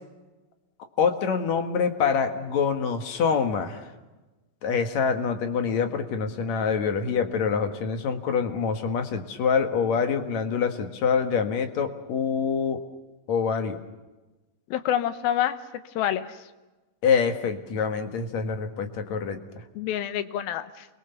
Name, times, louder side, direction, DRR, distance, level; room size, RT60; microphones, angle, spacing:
voice 1, 1.0-3.9 4.6-12.8 13.3-13.8 17.0-19.6, left 6 dB, 55° left, 7 dB, 2.5 m, -25 dB
voice 2, 14.7-15.6 16.0-16.3 19.8-20.9, left 11 dB, 90° left, 11 dB, 2.8 m, -27 dB
28.5 x 22.5 x 6.9 m, 1.1 s
omnidirectional pair, 4.2 m